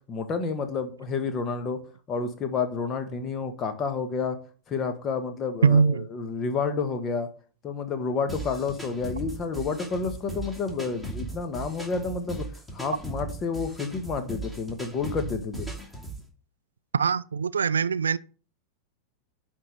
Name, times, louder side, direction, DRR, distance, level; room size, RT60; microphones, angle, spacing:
voice 1, 0.1-1.8 2.1-4.4 4.7-7.3 7.6-15.7, left 5 dB, 30° left, 1.5 m, -30 dB
voice 2, 5.6-6.1 16.9-18.2, right 5 dB, 70° right, 0.3 m, -22 dB
sound 1, 8.3-16.2, right 2 dB, 5° left, 2.5 m, -37 dB
10.5 x 3.8 x 6.6 m
figure-of-eight pair, 90°, 0 cm